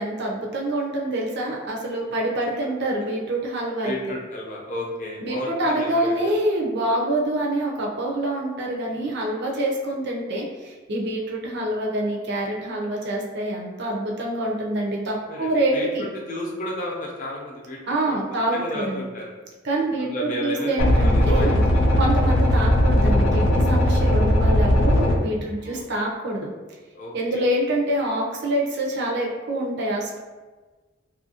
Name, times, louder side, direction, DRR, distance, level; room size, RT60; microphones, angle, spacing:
voice 1, 0.0-4.0 5.2-16.1 17.8-19.1 19.6-21.6 22.0-26.5 27.1-30.2, right 1 dB, 55° right, -2 dB, 0.5 m, -26 dB
voice 2, 3.8-6.3 8.8-9.1 15.3-17.8 18.1-18.2 18.5-19.4 20.0-22.0 25.6-25.9 26.9-27.5, left 1 dB, 40° left, -2 dB, 0.6 m, -33 dB
sound 1, 20.8-25.2, left 1 dB, 85° left, 0.4 m, -18 dB
2.7 x 2.5 x 2.7 m, 1.3 s
head